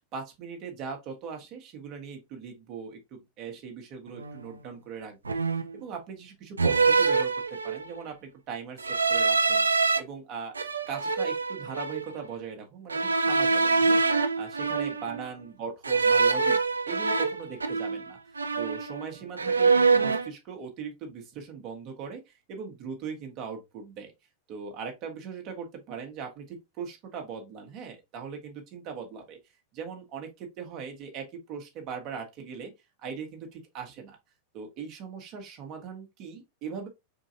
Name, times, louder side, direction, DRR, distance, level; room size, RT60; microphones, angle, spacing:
voice 1, 0.1-5.4 5.7-7.3 7.6-8.8 9.1-9.7 10.0-10.6 10.9-16.6 16.9-24.1 24.5-29.4 29.7-32.7 33.0-34.2 34.5-36.9, right 6 dB, 40° right, 1.2 m, -40 dB
sound 1, 4.2-4.4 5.2-5.8 6.6-8.0 8.8-10.0 10.5-12.1 12.9-15.3 15.8-18.1 18.4-19.1 19.4-20.3, right 4 dB, 75° right, 0.4 m, -25 dB
3.8 x 3.7 x 2.7 m
figure-of-eight pair, 90°, 0 cm